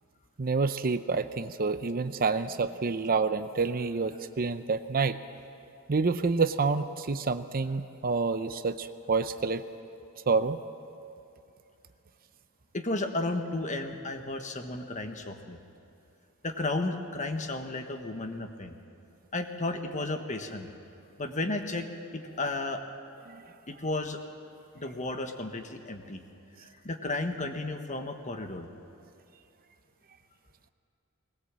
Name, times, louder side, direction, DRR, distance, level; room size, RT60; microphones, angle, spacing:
voice 1, 0.4-5.2 5.9-9.6 10.3-10.6 23.3-23.4, right 4 dB, 40° right, 11 dB, 0.6 m, -28 dB
voice 2, 12.7-15.6 16.4-18.7 19.3-20.7 21.2-21.9 22.1-22.8 23.7-24.2 24.7-26.2 26.6-28.7, left 2 dB, 35° left, 6 dB, 1.4 m, -33 dB
20.5 x 20.0 x 7.5 m, 2.6 s
head